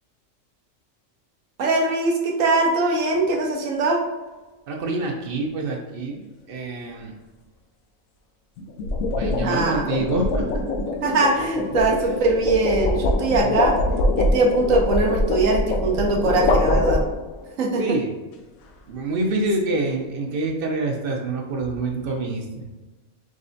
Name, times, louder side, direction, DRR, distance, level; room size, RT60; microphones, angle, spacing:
voice 1, 1.6-4.0 9.4-9.9 11.0-13.7 14.2-17.0 17.6-18.0, right 3 dB, 75° right, 1 dB, 1.2 m, -21 dB
sound 1, 3.1-3.4 8.6-17.5, left 2 dB, 85° left, 1.1 m, -24 dB
voice 2, 4.7-7.2 9.2-10.8 13.4-13.5 17.8-18.1 18.9-22.7, right 2 dB, 50° right, 1 dB, 0.8 m, -26 dB
4.9 x 3.2 x 2.7 m, 1.2 s
omnidirectional pair, 1.4 m